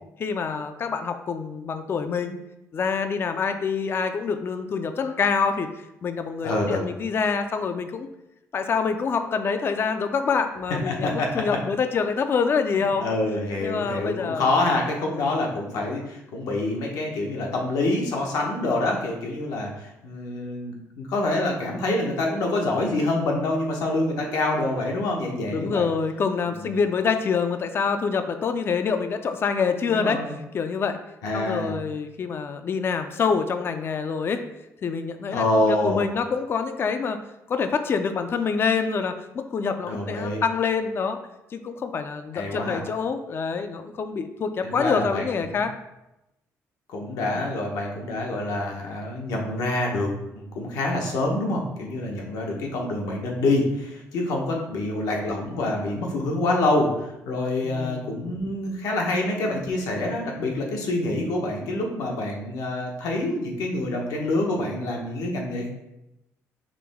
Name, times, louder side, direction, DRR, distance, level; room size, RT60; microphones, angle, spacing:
voice 1, 0.2-2.4 2.7-5.7 6.0-8.1 8.5-13.0 13.6-14.5 15.1-15.4 25.5-30.2 30.5-31.0 31.3-34.4 34.8-37.2 37.5-41.2 41.5-45.7 47.3-47.5 54.5-54.6 57.6-58.1, left 5 dB, 40° left, 8 dB, 0.4 m, -26 dB
voice 2, 6.4-6.8 10.9-11.3 13.0-25.9 26.4-26.7 29.9-30.3 31.2-31.7 35.3-36.0 39.8-40.4 42.3-42.8 44.6-45.5 46.9-65.7, left 2 dB, 85° left, 0 dB, 1.0 m, -26 dB
5.0 x 3.0 x 3.5 m, 0.89 s
cardioid pair, 115°, 6 cm